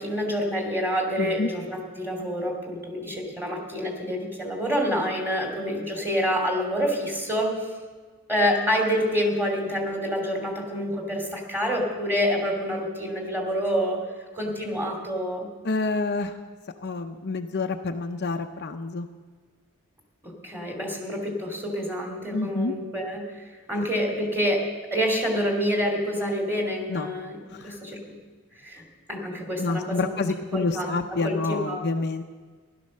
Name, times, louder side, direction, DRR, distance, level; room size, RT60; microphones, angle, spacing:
voice 1, 0.0-7.7 8.3-14.0 14.3-15.5 20.2-24.6 24.9-27.4 27.6-28.0 28.6-28.8 29.1-30.1 30.5-30.9 31.2-31.8, equal, 10° right, 1 dB, 2.8 m, -27 dB
voice 2, 1.2-1.5 15.6-16.4 16.8-19.1 22.3-22.7 23.7-23.8 26.9-27.1 27.5-27.8 29.6-32.2, left 3 dB, 50° left, 5 dB, 0.7 m, -28 dB
16.0 x 12.0 x 6.5 m, 1.4 s
head